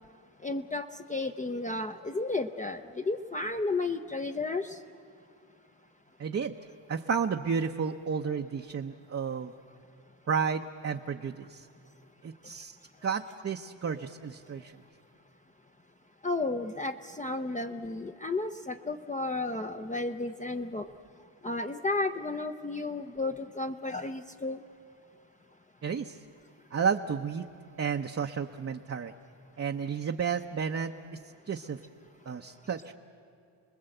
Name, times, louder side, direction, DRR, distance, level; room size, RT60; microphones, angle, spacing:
voice 1, 0.4-4.8 16.2-20.9 21.4-24.6, left 3 dB, 15° left, 6 dB, 0.6 m, -33 dB
voice 2, 6.2-6.5 6.9-9.5 10.3-11.7 12.2-12.8 13.0-14.7 25.8-26.2 26.7-27.5 27.8-29.1 29.6-30.9 31.5-31.8 32.3-32.9, right 6 dB, 30° right, 3 dB, 0.8 m, -32 dB
28.5 x 20.5 x 7.9 m, 2.4 s
cardioid pair, 110°, 45 cm